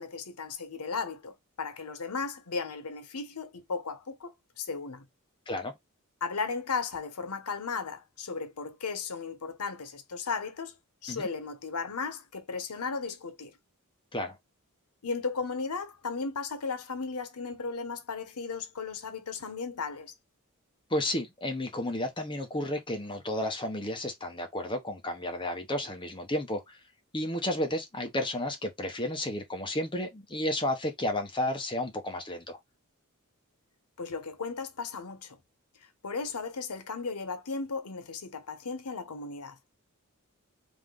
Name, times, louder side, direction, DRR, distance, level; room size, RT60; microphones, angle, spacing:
voice 1, 0.0-5.0 6.2-10.7 11.0-13.5 15.0-20.1 34.0-35.4 36.0-39.6, left 4 dB, 85° left, 0.8 m, -35 dB
voice 2, 20.9-26.8 27.1-32.6, left 1 dB, 20° left, 0.9 m, -32 dB
3.6 x 3.2 x 3.7 m
head